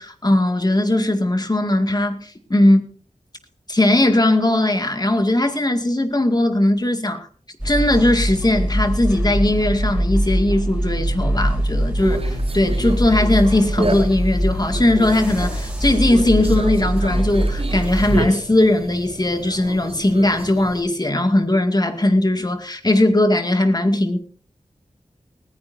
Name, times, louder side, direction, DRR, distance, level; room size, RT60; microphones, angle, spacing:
voice 1, 0.0-2.9 3.7-7.3 7.6-24.2, left 1 dB, 30° left, 2.2 m, -19 dB
sound 1, 7.6-18.2, equal, 5° right, 4.2 m, -23 dB
Conversation, 12.0-20.8, right 2 dB, 50° right, 4.7 m, -31 dB
20.0 x 16.0 x 2.7 m
wide cardioid pair, 50°, 13 cm